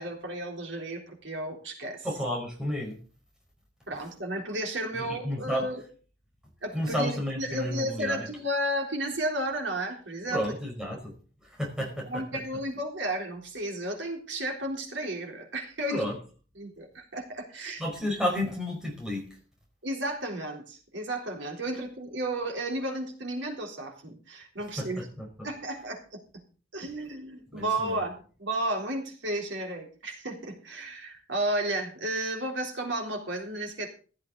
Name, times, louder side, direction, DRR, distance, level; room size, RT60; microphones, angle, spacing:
voice 1, 0.0-2.1 3.9-5.8 6.6-10.4 12.1-16.0 16.6-17.8 19.8-25.0 25.4-26.4 26.7-33.9, right 1 dB, 85° right, 2 dB, 3.7 m, -33 dB
voice 2, 2.0-3.0 4.9-5.7 6.7-8.3 10.3-11.1 11.4-12.4 15.9-16.2 17.8-19.4 24.8-25.5 27.5-28.0, left 1 dB, 5° right, 0 dB, 4.8 m, -32 dB
15.5 x 12.5 x 4.0 m, 0.38 s
head